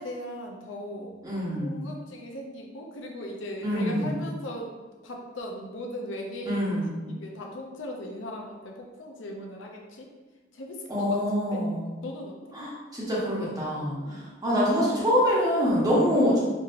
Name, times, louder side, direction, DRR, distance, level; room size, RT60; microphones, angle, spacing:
voice 1, 0.0-1.1 1.6-4.7 5.0-6.7 7.2-10.1 10.5-11.2 11.5-11.6 12.0-12.3 14.0-14.2, left 1 dB, 80° left, 1 dB, 0.6 m, -38 dB
voice 2, 1.2-1.8 3.6-4.2 6.5-7.0 10.9-11.9 12.5-16.4, equal, 20° right, -6 dB, 1.1 m, -25 dB
4.5 x 2.8 x 2.6 m, 1.2 s
head